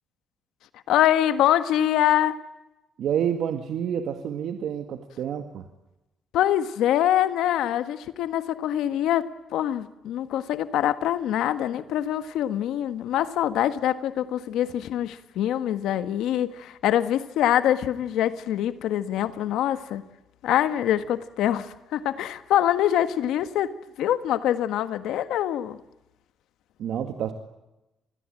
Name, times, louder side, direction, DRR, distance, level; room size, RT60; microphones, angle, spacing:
voice 1, 0.9-2.4 6.3-20.0 20.4-23.7 24.0-25.8, left 11 dB, 85° left, 1.5 m, -24 dB
voice 2, 3.0-5.7 26.8-27.3, right 9 dB, 75° right, 2.1 m, -28 dB
28.5 x 21.0 x 9.1 m
cardioid pair, 90°, 0 cm